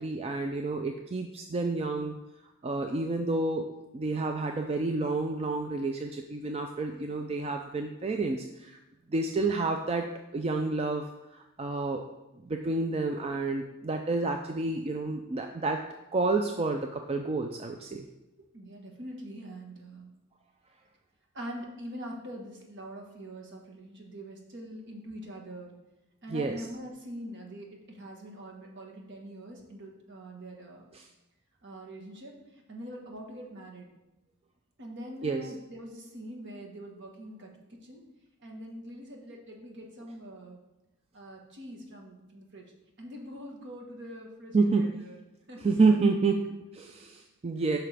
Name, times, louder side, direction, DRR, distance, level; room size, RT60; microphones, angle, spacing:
voice 1, 0.0-2.2 2.6-3.7 3.9-8.8 9.1-12.0 12.4-15.8 16.1-18.1 26.3-26.7 30.9-31.1 35.2-35.5 44.5-44.9 45.6-47.8, right 3 dB, 30° right, 4 dB, 0.4 m, -29 dB
voice 2, 18.5-20.1 21.3-25.8 26.2-30.9 31.6-32.3 32.7-33.9 34.8-38.0 38.4-40.6 41.1-42.6 43.0-45.2 45.5-46.0, equal, 60° right, 0 dB, 1.4 m, -43 dB
8.5 x 5.8 x 3.4 m, 0.98 s
head